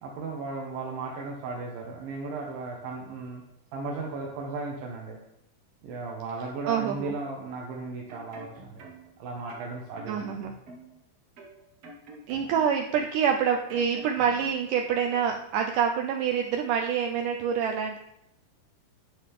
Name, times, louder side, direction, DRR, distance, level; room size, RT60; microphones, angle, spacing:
voice 1, 0.0-3.4 3.7-5.2 5.8-8.8 9.2-10.4, right 3 dB, 70° right, -1 dB, 2.6 m, -36 dB
voice 2, 6.7-7.1 10.1-10.6 12.3-18.0, right 7 dB, 90° right, 3 dB, 1.8 m, -26 dB
sound 1, 7.9-9.2 9.5-11.0 11.4-12.9 13.2-14.8 15.1-15.3, right 2 dB, 55° right, 2.2 m, -47 dB
10.5 x 7.4 x 3.6 m, 0.80 s
omnidirectional pair, 4.5 m